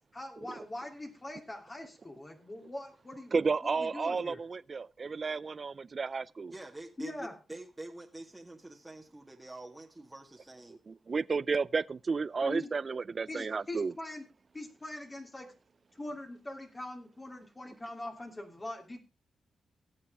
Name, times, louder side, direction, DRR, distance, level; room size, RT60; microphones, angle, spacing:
voice 1, 0.1-3.3 3.6-4.4 7.0-7.3 12.4-12.7 13.3-14.3 14.5-15.5 15.9-19.0, left 1 dB, 25° left, 2.8 m, -42 dB
voice 2, 3.3-6.5 10.9-13.9, right 4 dB, 45° right, 0.5 m, -32 dB
voice 3, 6.5-10.8, right 2 dB, 15° right, 1.9 m, -46 dB
17.5 x 7.5 x 3.5 m
cardioid pair, 65°, 0 cm